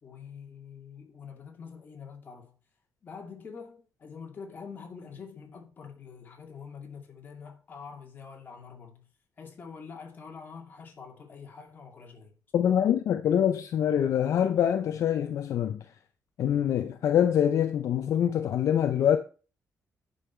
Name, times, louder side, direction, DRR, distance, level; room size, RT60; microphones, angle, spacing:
voice 1, 0.0-2.6 3.0-9.1 9.4-12.3 12.6-12.8, left 6 dB, 30° left, 2.3 m, -45 dB
voice 2, 12.5-15.9 16.4-19.2, left 9 dB, 65° left, 0.7 m, -25 dB
10.5 x 5.6 x 4.4 m
cardioid pair, 165°, 6 cm